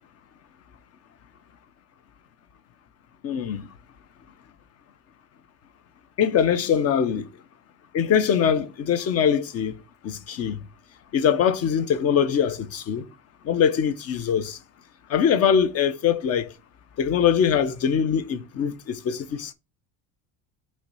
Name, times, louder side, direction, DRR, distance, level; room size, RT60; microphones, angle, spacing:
voice 1, 3.2-3.7 6.2-7.3 7.9-9.7 10.0-10.6 11.1-13.0 13.5-14.6 15.1-16.5 17.0-19.5, left 8 dB, 40° left, 0.7 m, -22 dB
5.7 x 3.3 x 5.3 m
cardioid pair, 155°, 39 cm